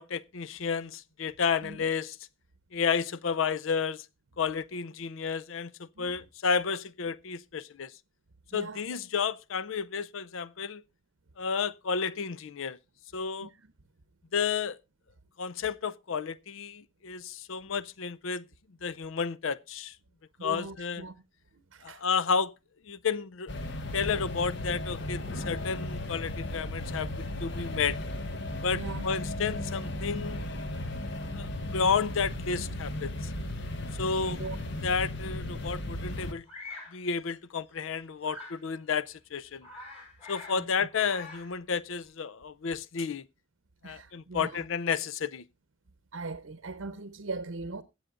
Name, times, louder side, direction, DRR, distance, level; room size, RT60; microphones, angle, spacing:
voice 1, 0.0-2.2 2.7-4.1 4.4-7.9 8.5-10.8 11.4-12.8 13.1-13.5 14.3-14.8 15.4-18.5 18.8-19.9 20.4-21.0 21.8-22.5 22.9-23.5 23.9-28.0 28.6-30.4 31.4-33.3 34.0-34.4 34.8-36.4 36.9-39.7 40.3-43.3 43.8-45.4, left 6 dB, 75° left, 0.5 m, -31 dB
voice 2, 20.4-21.1 21.5-22.0 28.7-29.0 30.8-30.9 34.3-34.6 38.4-38.5 40.5-40.6 43.8-44.6 46.1-47.8, right 3 dB, 80° right, 0.8 m, -40 dB
sound 1, 23.5-36.3, left 1 dB, 60° left, 1.2 m, -35 dB
Bird vocalization bird call bird song, 36.5-37.0 38.2-38.6 39.1-39.2 39.5-40.6 40.9-41.6, left 3 dB, 30° left, 5.4 m, -45 dB
22.5 x 7.8 x 2.5 m
head